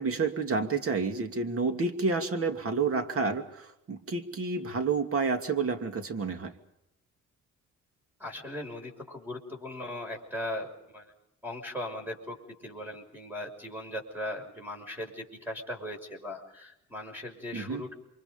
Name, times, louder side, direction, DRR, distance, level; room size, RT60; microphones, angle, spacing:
voice 1, 0.0-6.5 17.5-17.8, right 4 dB, 50° right, 7 dB, 2.7 m, -29 dB
voice 2, 8.2-10.7 10.9-11.1 11.4-17.9, left 1 dB, 5° right, 3 dB, 6.2 m, -38 dB
28.5 x 24.5 x 5.3 m, 0.84 s
cardioid pair, 90°, 30 cm